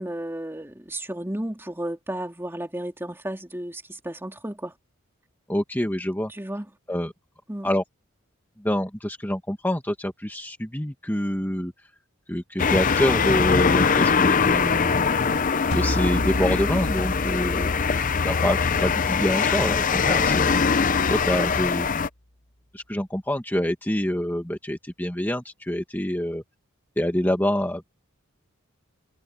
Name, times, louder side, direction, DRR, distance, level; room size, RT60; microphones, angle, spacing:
voice 1, 0.0-4.7 6.3-6.7 7.5-7.7 17.5-17.8, right 1 dB, 10° right, 2.9 m, -33 dB
voice 2, 5.5-6.3 6.9-7.1 7.6-7.8 8.6-11.7 12.3-15.2 15.7-17.7 18.2-20.6 21.1-21.9 22.7-26.4 27.0-27.8, left 1 dB, 10° left, 1.8 m, -26 dB
sound 1, 12.6-22.1, left 5 dB, 40° left, 0.6 m, -22 dB
sound 2, 15.7-20.8, equal, 75° left, 4.3 m, -33 dB
head